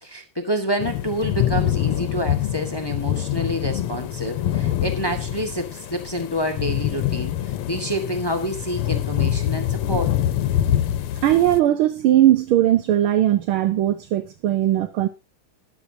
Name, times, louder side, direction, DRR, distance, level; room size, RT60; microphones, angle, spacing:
voice 1, 0.0-10.1, equal, 15° left, 5 dB, 1.3 m, -28 dB
sound 1, 0.8-11.6, left 11 dB, 85° left, 1.8 m, -25 dB
voice 2, 11.2-15.1, right 13 dB, 75° right, 11 dB, 1.6 m, -19 dB
21.0 x 8.1 x 2.8 m, 0.25 s
omnidirectional pair, 2.4 m